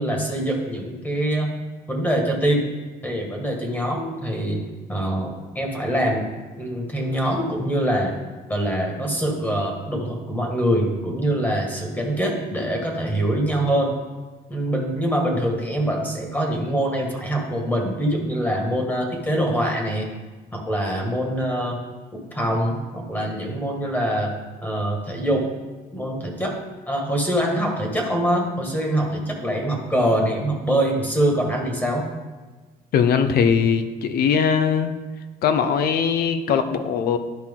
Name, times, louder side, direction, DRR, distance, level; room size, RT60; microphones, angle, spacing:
voice 1, 0.0-1.5 1.9-2.7 3.0-4.6 4.9-6.3 6.6-8.1 8.5-14.0 14.5-20.1 20.5-21.8 22.1-24.3 24.6-25.5 25.9-26.6 26.9-32.0, right 1 dB, 10° left, 1 dB, 1.7 m, -24 dB
voice 2, 32.9-34.9 35.4-37.2, left 7 dB, 65° left, 9 dB, 0.7 m, -20 dB
11.5 x 4.5 x 3.8 m, 1.3 s
cardioid pair, 110°, 17 cm